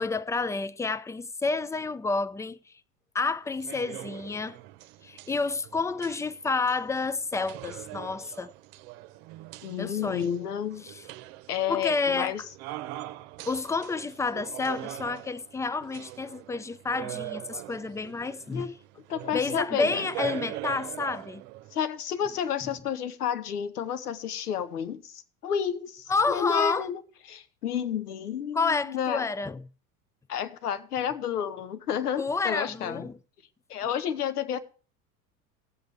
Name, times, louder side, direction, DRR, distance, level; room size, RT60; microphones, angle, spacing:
voice 1, 0.0-2.6 3.1-4.6 5.0-8.5 9.8-10.3 10.8-10.9 11.7-12.3 13.5-18.7 19.3-21.4 26.1-26.8 28.5-29.6 32.2-33.1, left 4 dB, 5° left, 0.5 m, -29 dB
sound 1, 3.5-21.8, right 16 dB, 60° right, 1.0 m, -42 dB
voice 2, 9.6-10.9 11.5-12.4 18.5-18.7 19.1-20.1 21.7-27.0 27.3-29.3 30.3-33.1 33.7-34.6, left 8 dB, 85° left, 1.2 m, -31 dB
18.5 x 7.9 x 3.4 m
hypercardioid pair, 80°, 45 cm